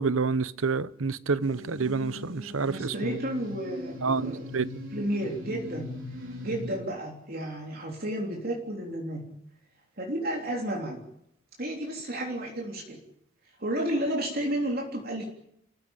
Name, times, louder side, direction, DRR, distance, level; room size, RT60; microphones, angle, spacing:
voice 1, 0.0-3.2 4.0-4.8, right 4 dB, 90° right, 0.9 m, -28 dB
sound 1, 1.4-6.8, left 1 dB, 70° right, 4.7 m, -40 dB
voice 2, 2.7-4.5 4.9-6.0 6.4-9.4 10.0-11.0 11.6-13.0 13.6-15.3, right 1 dB, 45° right, 3.4 m, -32 dB
29.5 x 15.0 x 8.9 m
head